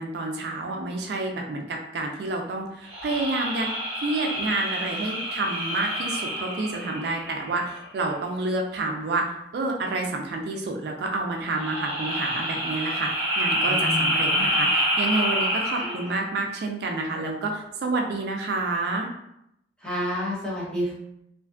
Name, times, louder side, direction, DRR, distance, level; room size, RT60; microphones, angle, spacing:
voice 1, 0.0-3.7 4.0-19.1, right 2 dB, 60° right, 2 dB, 0.3 m, -29 dB
sound 1, 2.9-7.6 11.4-16.2, equal, 35° right, 1.1 m, -27 dB
voice 2, 13.8-14.5 19.8-20.9, equal, 5° left, -7 dB, 0.7 m, -29 dB
2.5 x 2.3 x 2.3 m, 0.79 s
head